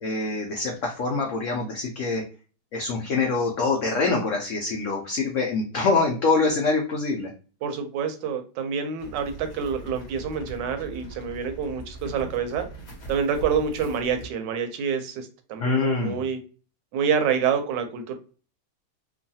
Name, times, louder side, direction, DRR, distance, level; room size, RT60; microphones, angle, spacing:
voice 1, 0.0-2.2 2.7-7.3 15.6-16.2, left 3 dB, 80° left, 1 dB, 0.6 m, -25 dB
voice 2, 7.6-12.7 13.1-16.4 16.9-18.2, right 6 dB, 80° right, 7 dB, 1.2 m, -27 dB
sound 1, 9.0-14.3, right 3 dB, 50° left, 0.9 m, -41 dB
3.1 x 2.3 x 2.6 m, 0.36 s
omnidirectional pair, 1.9 m